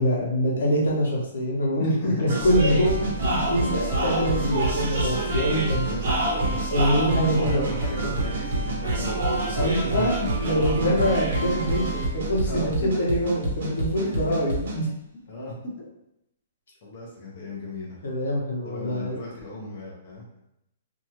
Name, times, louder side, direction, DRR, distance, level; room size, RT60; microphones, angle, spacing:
voice 1, 0.0-5.8 6.7-7.8 9.5-10.1 10.4-14.9 18.0-19.2, equal, 80° left, -3 dB, 1.0 m, -24 dB
voice 2, 1.8-2.4 5.4-6.6 7.4-10.1 12.4-12.7 14.0-14.4 15.3-15.9 16.8-18.0 18.6-20.4, left 1 dB, 35° left, -4 dB, 0.7 m, -36 dB
sound 1, 2.3-14.8, right 1 dB, 50° right, 0.8 m, -27 dB
sound 2, 2.4-12.7, right 7 dB, ahead, 0.7 m, -36 dB
2.7 x 2.4 x 2.9 m, 0.81 s
hypercardioid pair, 180°, 0 cm